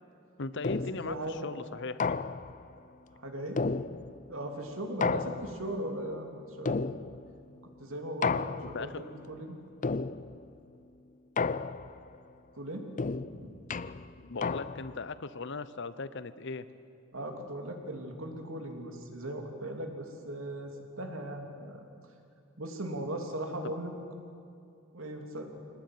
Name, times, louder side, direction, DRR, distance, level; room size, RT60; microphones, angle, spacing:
voice 1, 0.4-2.2 8.6-9.0 14.2-16.6 23.6-23.7, left 3 dB, 60° left, 14 dB, 0.9 m, -38 dB
sound 1, 0.6-1.2 2.0-2.7 3.6-4.3 5.0-5.8 6.7-7.4 8.2-9.0 9.8-10.5 11.4-12.1 13.0-15.0, left 4 dB, 35° left, 0.5 m, -33 dB
voice 2, 1.0-1.5 3.1-3.6 4.3-6.3 6.6-7.1 7.8-9.6 12.5-12.8 13.4-13.5 17.1-21.8 22.6-23.9 24.9-25.5, right 1 dB, 70° right, 3 dB, 3.2 m, -38 dB
24.0 x 19.0 x 9.5 m, 2.5 s
head